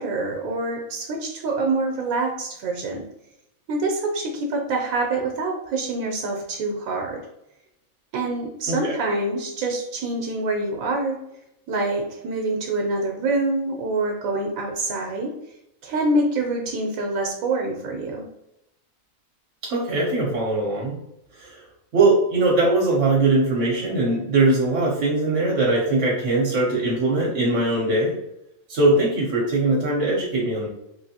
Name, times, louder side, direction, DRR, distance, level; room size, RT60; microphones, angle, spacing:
voice 1, 0.0-3.0 3.7-7.2 8.1-11.2 11.7-15.3 15.8-18.2, right 2 dB, 90° right, 1 dB, 1.0 m, -26 dB
voice 2, 19.6-21.0 21.3-21.7 21.9-28.2 28.7-30.7, right 2 dB, 65° right, -3 dB, 1.0 m, -21 dB
3.3 x 2.5 x 2.7 m, 0.82 s
omnidirectional pair, 1.4 m